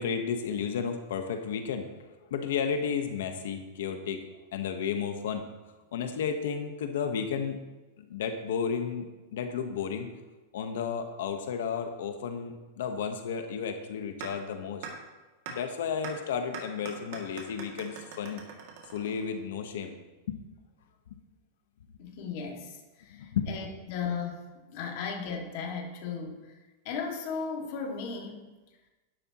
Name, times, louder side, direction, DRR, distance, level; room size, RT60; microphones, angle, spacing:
voice 1, 0.0-1.9 2.3-4.2 4.5-5.4 5.9-7.6 8.0-10.1 10.5-14.9 15.5-18.4 18.9-20.0 20.3-20.4 21.1-21.2 23.1-23.6, left 6 dB, 75° left, 6 dB, 1.2 m, -33 dB
sound 1, 14.2-14.3 14.8-14.9 15.5-15.6 16.0-16.1 16.5-19.5, right 7 dB, 45° right, 2.3 m, -41 dB
voice 2, 22.0-26.5 26.8-28.4, left 5 dB, 45° left, 0 dB, 2.2 m, -36 dB
12.5 x 11.5 x 3.0 m, 1.2 s
supercardioid pair, 170°, 0 cm